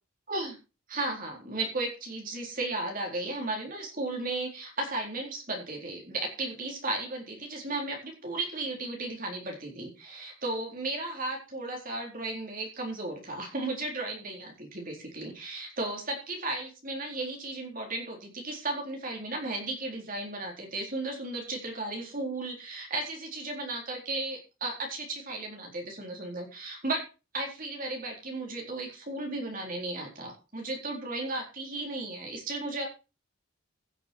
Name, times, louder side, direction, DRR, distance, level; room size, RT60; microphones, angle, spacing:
voice 1, 0.9-27.0 27.3-32.9, right 2 dB, 40° right, 1 dB, 4.1 m, -35 dB
15.5 x 7.0 x 4.6 m, 0.31 s
head